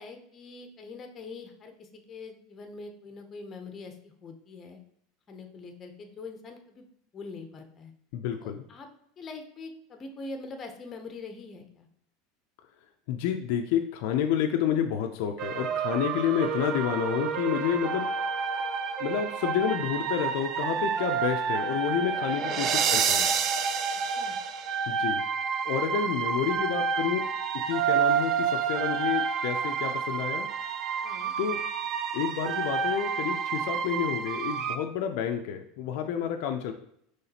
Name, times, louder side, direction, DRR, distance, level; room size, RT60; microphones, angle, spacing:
voice 1, 0.0-4.8 5.3-6.8 7.1-7.9 8.4-8.9 9.2-11.9 22.3-22.7 24.1-24.3 25.9-26.1 26.5-26.6 31.0-31.3, left 3 dB, 25° left, 5 dB, 0.7 m, -43 dB
voice 2, 8.1-8.6 13.1-18.1 18.6-18.7 19.0-23.3 24.9-25.2 25.6-27.2 27.7-30.5 31.4-31.6 32.1-36.7, left 9 dB, 65° left, 5 dB, 0.4 m, -29 dB
sound 1, 15.4-34.8, right 6 dB, 35° right, 0.4 m, -29 dB
5.7 x 3.1 x 2.8 m, 0.70 s
supercardioid pair, 140°, 0 cm